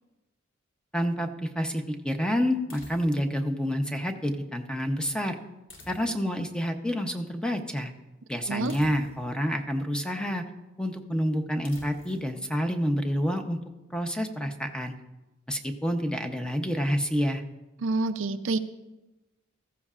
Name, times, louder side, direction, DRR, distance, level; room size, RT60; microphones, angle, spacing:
voice 1, 0.9-5.3 5.9-7.9 8.3-10.4 10.8-13.6 13.9-14.9 15.5-17.4, equal, 5° left, 5 dB, 0.8 m, -28 dB
sound 1, 2.7-3.4 5.7-6.4 8.7-9.4 11.6-12.3, left 1 dB, 75° left, 3.2 m, -50 dB
voice 2, 17.8-18.6, right 3 dB, 85° right, 9 dB, 0.6 m, -27 dB
15.0 x 14.0 x 2.5 m, 1.0 s
head